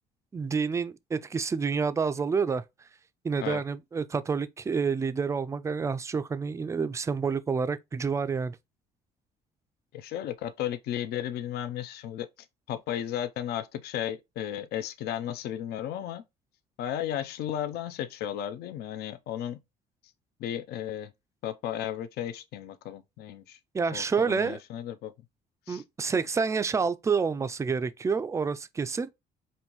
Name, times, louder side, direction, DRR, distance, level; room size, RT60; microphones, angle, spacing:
voice 1, 0.3-2.6 3.2-8.6 23.7-24.6 25.7-29.1, right 5 dB, 15° right, 0.3 m, -28 dB
voice 2, 9.9-12.3 12.7-16.2 16.8-19.6 20.4-21.1 21.4-23.6 23.9-25.1 25.7-25.8, left 10 dB, 70° left, 0.5 m, -34 dB
5.3 x 2.6 x 3.0 m
cardioid pair, 110°, 17 cm